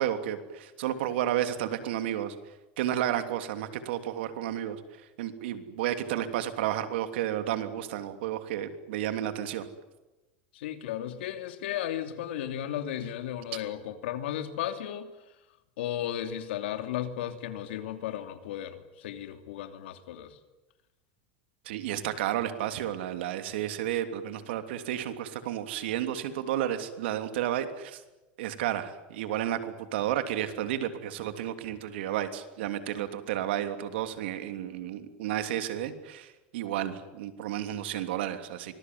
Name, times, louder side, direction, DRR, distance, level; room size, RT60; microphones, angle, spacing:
voice 1, 0.0-2.3 2.8-4.8 5.2-9.7 21.6-28.0 28.4-38.7, right 11 dB, 85° right, 9 dB, 3.1 m, -32 dB
voice 2, 10.5-15.1 15.8-20.4, left 11 dB, 90° left, 8 dB, 2.9 m, -35 dB
25.5 x 20.5 x 9.6 m, 1.0 s
supercardioid pair, 135°, 6 cm